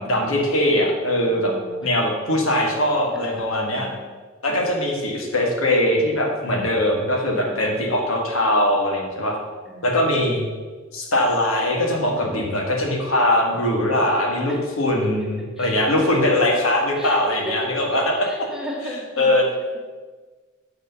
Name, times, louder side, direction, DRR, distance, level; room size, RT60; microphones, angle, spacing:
voice 1, 0.0-1.5 1.8-3.9 4.4-9.4 9.8-10.4 10.9-18.0 19.2-19.5, left 1 dB, 90° left, 0 dB, 1.8 m, -21 dB
voice 2, 1.2-2.1 3.1-4.0 4.5-5.1 6.4-6.9 7.3-7.8 9.6-10.1 12.1-12.6 13.9-14.6 15.0-15.3 15.6-16.2 16.9-17.7 18.2-19.8, equal, 5° right, -3 dB, 1.6 m, -38 dB
6.9 x 4.9 x 6.9 m, 1.4 s
head